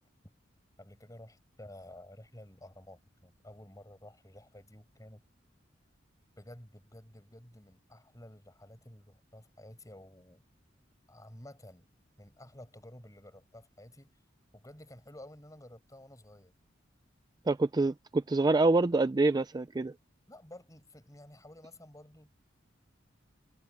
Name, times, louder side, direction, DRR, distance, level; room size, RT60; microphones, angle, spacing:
voice 1, 0.8-5.2 6.4-10.4 11.1-11.9 12.2-14.1 14.5-16.5 20.3-22.3, left 1 dB, 20° left, 7.9 m, -52 dB
voice 2, 17.5-19.9, right 2 dB, 20° right, 0.4 m, -26 dB
head